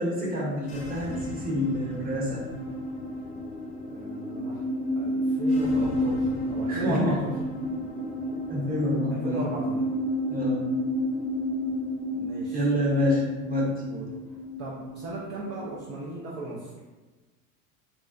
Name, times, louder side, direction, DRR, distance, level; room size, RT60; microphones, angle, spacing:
voice 1, 0.0-2.4 6.7-7.2 8.5-9.4 10.3-10.6 12.5-13.8, left 1 dB, 20° right, -4 dB, 0.9 m, -27 dB
sound 1, 0.6-16.1, left 1 dB, 15° left, 0.8 m, -31 dB
voice 2, 3.9-4.6 5.0-7.3 9.1-9.8 12.1-12.6 13.9-14.1 14.6-16.7, right 2 dB, 40° right, -4 dB, 0.6 m, -36 dB
3.6 x 2.0 x 2.5 m, 1.3 s
hypercardioid pair, 85°, 45 cm